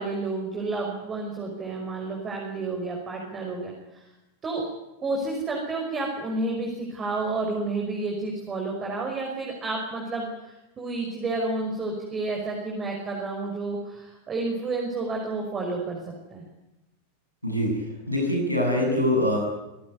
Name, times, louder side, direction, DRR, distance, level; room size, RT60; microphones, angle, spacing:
voice 1, 0.0-4.1 4.4-4.7 5.0-16.0 16.3-16.4, right 3 dB, 20° right, 1 dB, 5.6 m, -30 dB
voice 2, 17.4-19.4, left 1 dB, 90° right, 0 dB, 7.3 m, -24 dB
26.0 x 17.5 x 9.7 m, 0.97 s
figure-of-eight pair, 90°, 0 cm